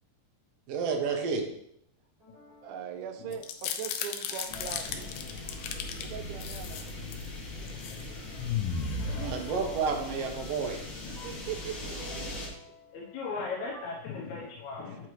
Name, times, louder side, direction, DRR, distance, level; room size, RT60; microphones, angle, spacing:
voice 1, 0.7-1.5 9.2-10.9, right 5 dB, 65° right, 3 dB, 1.7 m, -30 dB
sound 1, 2.2-6.7 9.0-14.0, left 3 dB, 35° right, 3.2 m, -52 dB
voice 2, 2.6-5.1 6.0-6.9 11.2-12.2 14.9-15.0, right 9 dB, 85° right, 7 dB, 2.1 m, -40 dB
sound 2, 3.3-6.1 6.4-7.3 7.7-8.0 8.4-10.0, left 6 dB, 90° left, 2.1 m, -35 dB
sound 3, 4.5-12.5, left 2 dB, 45° left, 2.4 m, -40 dB
voice 3, 7.6-8.4 11.0-11.1 12.9-15.1, left 4 dB, 75° left, -3 dB, 2.2 m, -39 dB
8.6 x 4.7 x 3.1 m, 0.71 s
omnidirectional pair, 3.6 m